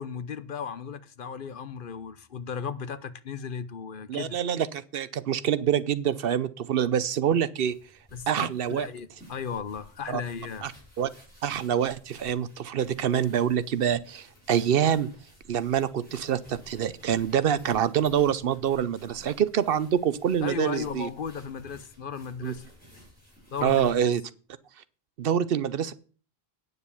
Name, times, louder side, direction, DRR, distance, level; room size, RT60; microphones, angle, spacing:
voice 1, 0.0-4.4 8.1-10.7 20.4-22.6 23.5-24.1, left 6 dB, 60° left, 0.9 m, -35 dB
voice 2, 4.1-7.7 8.3-8.9 10.1-10.2 10.6-10.7 11.0-11.1 11.4-15.1 15.5-21.1 22.4-22.5 23.6-24.2 25.2-25.9, right 9 dB, 65° right, 0.8 m, -26 dB
sound 1, 7.6-24.1, equal, 10° left, 6.3 m, -54 dB
9.6 x 6.8 x 7.0 m
omnidirectional pair, 1.0 m